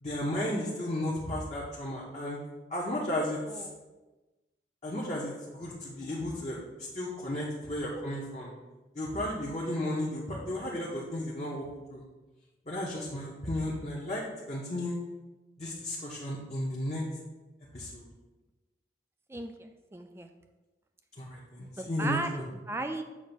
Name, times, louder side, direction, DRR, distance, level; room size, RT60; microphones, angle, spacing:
voice 1, 0.0-2.4 2.7-3.7 4.8-6.6 6.9-8.5 8.9-12.0 12.7-14.2 14.5-15.0 15.6-17.0 17.7-18.1 21.2-22.5, left 1 dB, 35° left, -5 dB, 0.8 m, -34 dB
voice 2, 19.3-20.3 21.6-23.0, right 2 dB, 15° right, 6 dB, 0.3 m, -37 dB
7.2 x 2.6 x 5.2 m, 1.2 s
head